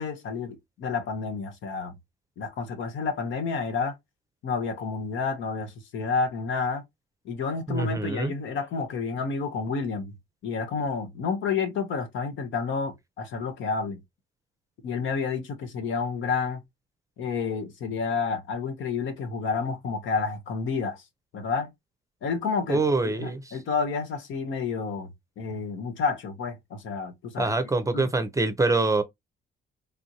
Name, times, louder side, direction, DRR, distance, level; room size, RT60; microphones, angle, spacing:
voice 1, 0.0-2.0 2.4-4.0 4.4-6.8 7.2-10.1 10.4-14.0 14.8-16.6 17.2-21.0 21.3-21.7 22.2-25.1 25.4-27.5 27.9-28.1, left 5 dB, 80° left, 1.0 m, -30 dB
voice 2, 7.7-8.3 22.7-23.4 27.4-29.0, right 3 dB, 15° right, 0.6 m, -25 dB
3.4 x 2.6 x 2.8 m
cardioid pair, 90°, 20 cm